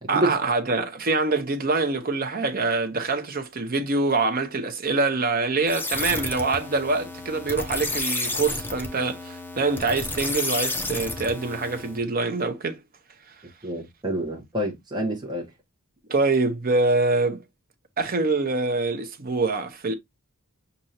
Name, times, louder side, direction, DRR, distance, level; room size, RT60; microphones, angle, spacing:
voice 1, 0.1-12.8 16.1-17.4 18.0-19.9, right 3 dB, 45° right, 0.8 m, -25 dB
sound 1, 5.7-12.0, left 2 dB, 10° left, 0.6 m, -31 dB
voice 2, 13.6-15.4, right 1 dB, 20° right, 1.1 m, -27 dB
6.4 x 2.7 x 2.8 m
head